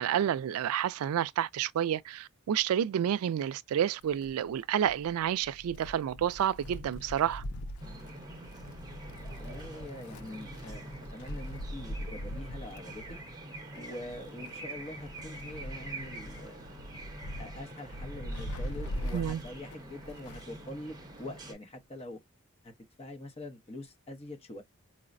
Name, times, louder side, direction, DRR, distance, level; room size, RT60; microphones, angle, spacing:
voice 1, 0.0-7.4 19.1-19.4, right 10 dB, 85° right, 0.3 m, -29 dB
Wind, 4.0-20.6 20.9-21.0 22.0-22.1, equal, 85° left, 0.5 m, -42 dB
sound 1, 7.8-21.5, right 2 dB, 20° right, 0.8 m, -46 dB
voice 2, 9.3-13.0 13.7-16.8 17.4-22.2 22.6-22.7 23.0-24.6, left 1 dB, 30° left, 0.8 m, -44 dB
4.6 x 2.0 x 2.5 m
head